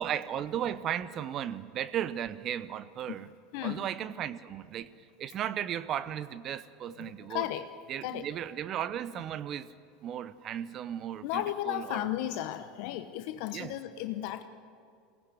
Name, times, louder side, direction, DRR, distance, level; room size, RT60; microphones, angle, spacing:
voice 1, 0.0-3.3 3.6-7.5 7.9-9.7 10.0-12.0 13.5-13.7, right 10 dB, 45° right, 15 dB, 0.8 m, -35 dB
voice 2, 3.5-3.9 6.9-7.7 8.0-8.3 11.2-14.4, left 13 dB, 60° left, 9 dB, 1.0 m, -34 dB
21.5 x 17.5 x 9.6 m, 2.3 s
hypercardioid pair, 85°, 0 cm